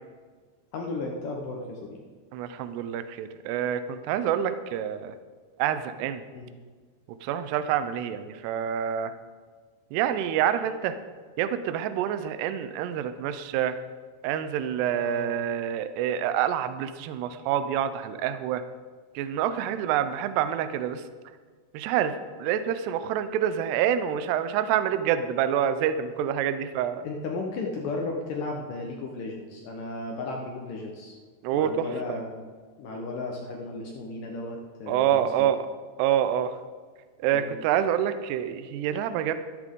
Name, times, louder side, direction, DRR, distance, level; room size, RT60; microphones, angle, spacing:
voice 1, 0.7-2.0 6.3-6.5 14.9-15.3 27.0-31.2 31.5-32.4 32.8-35.5 37.3-37.5, left 3 dB, 70° left, 1 dB, 2.2 m, -35 dB
voice 2, 2.3-5.1 5.6-6.2 7.2-9.1 9.9-11.0 11.4-13.8 14.2-18.6 19.2-21.0 21.7-27.0 31.4-32.2 34.9-35.7 36.0-36.5 37.2-39.3, right 10 dB, 80° right, 11 dB, 2.7 m, -27 dB
14.0 x 13.0 x 3.7 m, 1.5 s
omnidirectional pair, 4.9 m